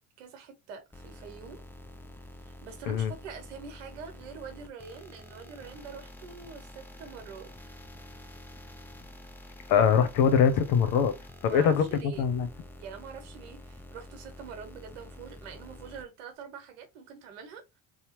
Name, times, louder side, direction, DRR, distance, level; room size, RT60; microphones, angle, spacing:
voice 1, 0.2-1.6 2.4-7.7 11.4-12.3 12.8-17.8, right 6 dB, 85° right, 1.0 m, -45 dB
sound 1, 0.9-16.0, left 1 dB, 5° left, 0.6 m, -48 dB
voice 2, 9.7-11.1 11.4-12.5, left 7 dB, 70° left, 0.8 m, -23 dB
2.8 x 2.2 x 2.9 m
hypercardioid pair, 70°, 36 cm